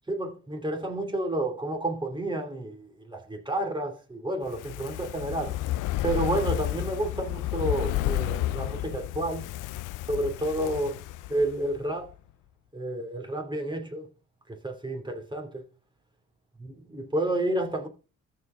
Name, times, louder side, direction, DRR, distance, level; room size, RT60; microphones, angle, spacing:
voice 1, 0.1-5.6 6.0-9.5 10.1-11.0 11.3-12.1 12.7-14.1 14.5-15.7 16.6-17.9, right 1 dB, 15° right, 2.7 m, -30 dB
Fire, 4.4-11.8 12.1-12.2, left 15 dB, 90° left, 0.5 m, -31 dB
13.5 x 4.8 x 3.8 m
cardioid pair, 90°, 30 cm